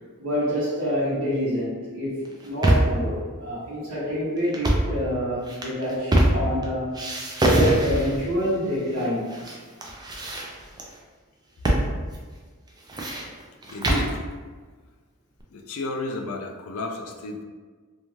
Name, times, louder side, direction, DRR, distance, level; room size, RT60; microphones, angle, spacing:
voice 1, 0.2-6.9 7.4-9.4, equal, 70° right, -13 dB, 1.0 m, -27 dB
sound 1, 2.3-3.0 4.5-5.0 5.5-6.6 6.9-8.2 9.0-9.6 9.8-10.9 11.6-11.9 12.1-12.2 12.7-14.2, right 1 dB, 20° right, 0.3 m, -23 dB
voice 2, 13.7-14.2 15.5-17.4, left 2 dB, 65° left, 3 dB, 0.4 m, -32 dB
2.5 x 2.3 x 3.0 m, 1.5 s
head